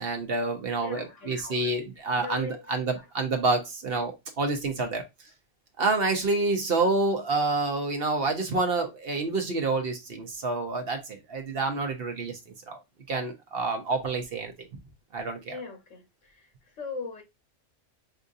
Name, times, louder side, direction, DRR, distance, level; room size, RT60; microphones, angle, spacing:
voice 1, 0.0-5.0 5.8-12.4 12.7-12.8 13.1-14.7 15.1-15.6, right 3 dB, 55° right, 0.9 m, -28 dB
voice 2, 0.8-1.7 2.2-2.6 15.5-16.0 16.8-17.2, left 4 dB, 75° left, 1.4 m, -38 dB
5.5 x 2.6 x 2.5 m
omnidirectional pair, 1.3 m